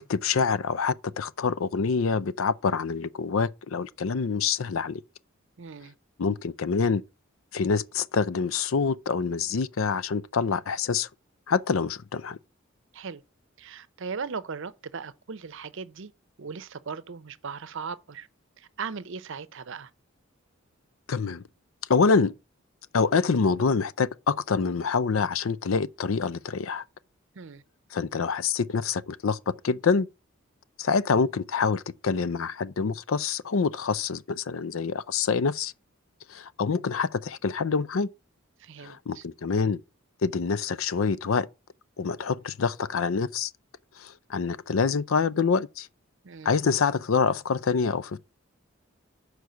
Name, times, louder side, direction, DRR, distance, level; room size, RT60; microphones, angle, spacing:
voice 1, 0.0-5.0 6.2-7.0 7.5-11.1 11.5-12.4 21.1-21.4 21.9-22.3 22.9-26.8 27.9-30.1 30.8-35.7 36.3-38.1 38.8-39.8 40.2-41.5 42.0-43.5 44.0-45.9 46.4-48.2, left 5 dB, 75° left, 0.5 m, -26 dB
voice 2, 5.6-5.9 12.9-13.2 13.6-16.1 16.4-18.3 18.6-19.9 27.3-27.6 38.6-39.2 46.2-46.6, right 5 dB, 65° right, 0.7 m, -38 dB
6.3 x 4.8 x 6.8 m
head